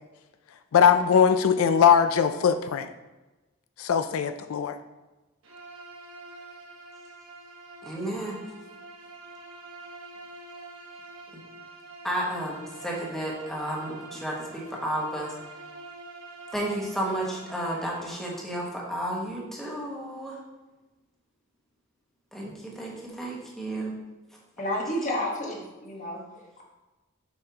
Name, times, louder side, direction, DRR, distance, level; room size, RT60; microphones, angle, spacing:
voice 1, 0.7-2.9 3.8-4.7, left 7 dB, 85° left, 9 dB, 0.4 m, -20 dB
Bowed string instrument, 5.4-18.2, right 2 dB, 70° right, 1.3 m, -46 dB
voice 2, 7.8-8.4 12.0-15.3 16.5-20.4 22.3-23.9, right 1 dB, ahead, -3 dB, 1.3 m, -32 dB
voice 3, 24.6-26.6, left 1 dB, 35° left, -1 dB, 1.3 m, -31 dB
7.1 x 5.4 x 2.9 m, 1.1 s
head